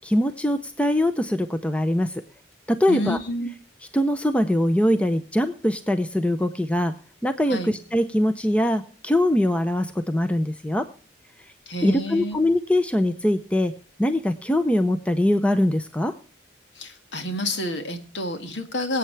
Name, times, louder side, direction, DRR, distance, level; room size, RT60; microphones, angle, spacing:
voice 1, 0.0-2.2 2.7-3.2 3.9-6.9 7.2-10.9 11.8-13.7 14.0-16.1, left 1 dB, 5° left, 9 dB, 0.6 m, -22 dB
voice 2, 2.9-3.5 7.5-7.7 11.7-12.4 16.8-19.0, left 1 dB, 75° left, 7 dB, 2.0 m, -29 dB
23.0 x 8.5 x 3.3 m, 0.43 s
head